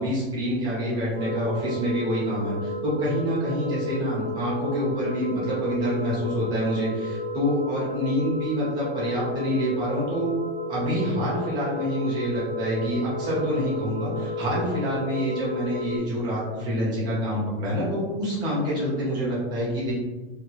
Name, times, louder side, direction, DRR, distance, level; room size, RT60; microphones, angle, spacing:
voice 1, 0.0-10.3 10.7-19.9, equal, 15° right, -6 dB, 0.7 m, -27 dB
sound 1, 1.2-16.0, left 2 dB, 80° left, 0.9 m, -32 dB
2.8 x 2.8 x 3.0 m, 1.2 s
supercardioid pair, 180°, 31 cm